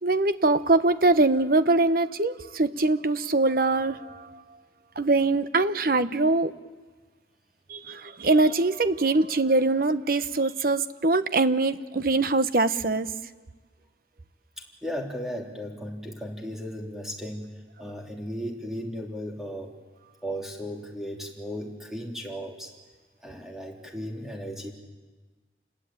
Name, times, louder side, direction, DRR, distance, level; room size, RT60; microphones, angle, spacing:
voice 1, 0.0-4.4 5.0-6.5 7.7-13.1, right 2 dB, 50° right, 12 dB, 1.0 m, -23 dB
voice 2, 14.6-19.7 20.2-22.7 23.2-24.7, equal, ahead, -1 dB, 3.5 m, -36 dB
29.0 x 21.0 x 9.0 m, 1.4 s
head